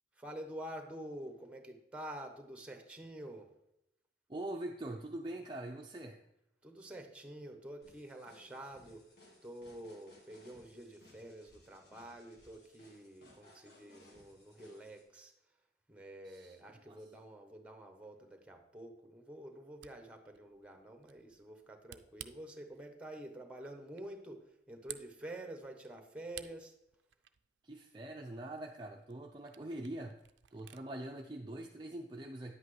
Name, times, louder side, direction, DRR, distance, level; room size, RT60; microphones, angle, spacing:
voice 1, 0.1-3.5 6.6-9.1 9.4-15.3 15.9-26.7, right 1 dB, 5° right, 5 dB, 1.0 m, -48 dB
voice 2, 4.3-6.2 16.3-16.5 16.9-17.0 27.6-30.2 30.5-32.5, right 1 dB, 25° right, 1 dB, 0.5 m, -43 dB
sound 1, 7.8-15.0, left 1 dB, 70° left, 1.8 m, -62 dB
Camera, 19.5-30.9, right 12 dB, 90° right, 0.4 m, -56 dB
9.7 x 8.2 x 3.2 m, 0.83 s
head